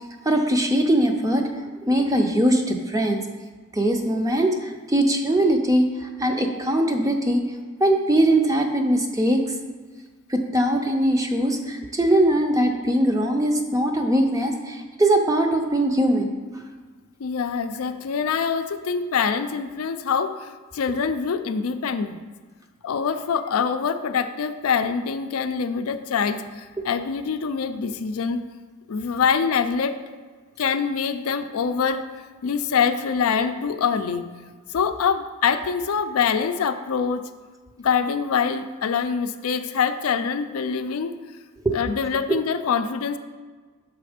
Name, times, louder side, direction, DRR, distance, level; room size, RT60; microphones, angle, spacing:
voice 1, 0.2-1.5 1.9-3.2 3.7-7.4 7.8-9.4 10.3-16.6, right 1 dB, 15° right, 3 dB, 0.5 m, -21 dB
voice 2, 17.2-22.2 22.8-28.4 28.9-30.0 30.6-32.0 32.4-34.3 34.7-37.2 37.8-41.2 41.7-43.2, left 6 dB, 85° left, 9 dB, 0.4 m, -24 dB
6.1 x 4.1 x 5.0 m, 1.4 s
head